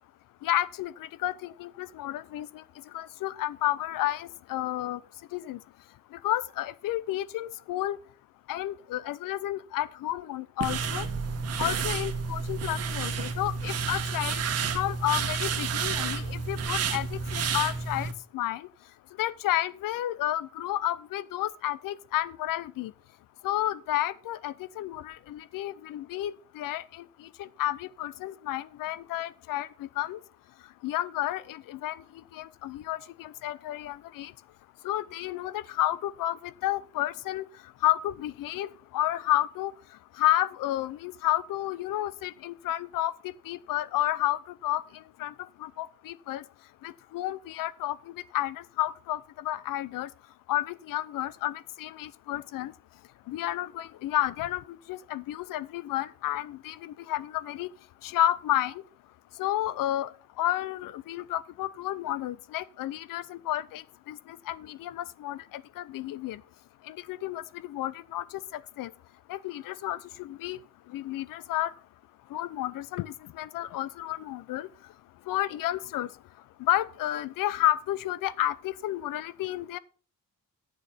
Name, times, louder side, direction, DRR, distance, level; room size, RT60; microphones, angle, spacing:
voice 1, 0.4-0.9 1.2-2.5 2.9-5.0 5.3-5.6 6.2-8.0 8.5-11.1 11.6-14.4 14.7-18.6 19.2-22.9 23.4-26.8 27.4-29.7 30.0-30.2 30.8-32.0 32.3-34.3 34.8-36.4 36.6-37.4 37.8-38.7 38.9-39.7 40.2-43.1 43.5-44.8 45.2-45.3 45.6-46.4 46.8-48.0 48.3-50.1 50.5-52.7 53.3-54.6 54.9-57.7 58.0-58.7 59.4-60.1 60.4-64.2 64.5-65.4 65.8-66.4 66.9-67.4 67.7-68.2 68.8-68.9 69.3-70.6 70.9-71.7 72.3-74.7 75.3-76.1 76.6-79.8, left 14 dB, 75° left, 0.7 m, -31 dB
sound 1, 10.6-18.1, right 5 dB, 45° right, 1.3 m, -30 dB
9.3 x 7.1 x 5.7 m
cardioid pair, 180°, 34 cm